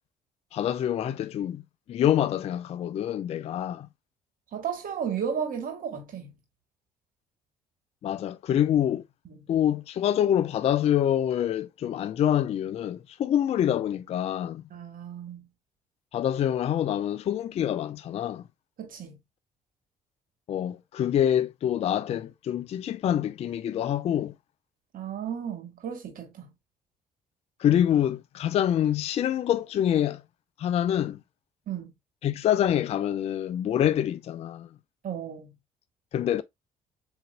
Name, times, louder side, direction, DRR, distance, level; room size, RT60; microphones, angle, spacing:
voice 1, 0.5-1.6 1.9-3.9 8.0-9.0 9.5-14.6 16.1-18.4 20.5-24.3 27.6-30.2 30.6-31.2 32.2-34.7 36.1-36.4, left 10 dB, 35° left, 0.4 m, -26 dB
voice 2, 4.5-6.3 9.3-9.4 14.7-15.5 18.8-19.2 24.9-26.5 31.7-31.9 35.0-35.5, right 8 dB, 45° right, 1.5 m, -34 dB
7.5 x 2.6 x 2.2 m
figure-of-eight pair, 45°, 19 cm